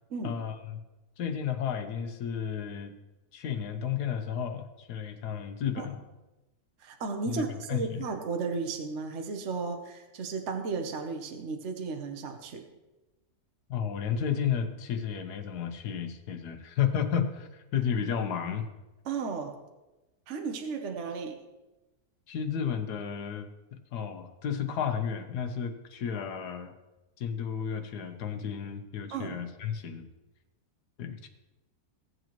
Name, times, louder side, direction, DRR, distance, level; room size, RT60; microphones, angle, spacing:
voice 1, 0.2-0.8 1.2-2.9 3.3-6.0 7.3-7.4 7.7-8.0 13.7-18.7 22.3-26.7 27.2-30.1 31.0-31.3, left 8 dB, 75° left, 7 dB, 1.4 m, -32 dB
voice 2, 6.8-12.7 19.0-19.6 20.3-21.4 29.1-29.4, right 4 dB, 50° right, 4 dB, 1.1 m, -34 dB
16.5 x 7.9 x 3.0 m, 1.0 s
omnidirectional pair, 1.7 m